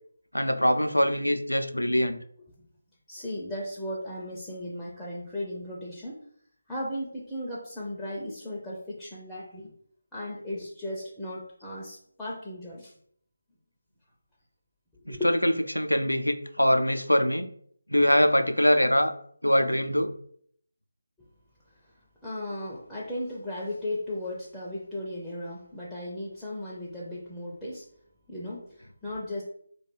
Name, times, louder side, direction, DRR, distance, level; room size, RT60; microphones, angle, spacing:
voice 1, 0.3-2.2 15.1-17.5 17.9-19.1 19.4-20.1, equal, 85° left, 8 dB, 0.3 m, -23 dB
voice 2, 3.1-6.2 6.7-9.7 10.1-12.9 15.1-15.3 22.2-27.9 28.3-29.4, left 1 dB, ahead, -8 dB, 0.4 m, -36 dB
2.3 x 2.2 x 3.1 m, 0.63 s
figure-of-eight pair, 160°, 0 cm